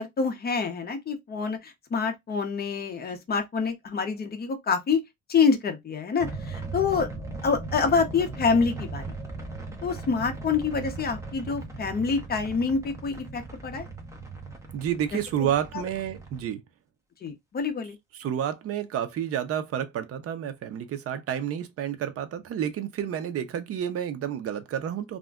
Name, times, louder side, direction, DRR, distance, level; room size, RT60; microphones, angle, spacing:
voice 1, 0.0-5.0 5.3-7.1 7.4-9.0 9.8-13.9 15.1-15.2 17.2-18.0, left 5 dB, 30° left, 0.6 m, -26 dB
sound 1, 6.2-16.5, right 3 dB, 10° right, 0.7 m, -38 dB
voice 2, 14.7-16.6 18.1-25.2, right 9 dB, 50° right, 0.5 m, -30 dB
2.4 x 2.1 x 3.4 m
cardioid pair, 145°, 30 cm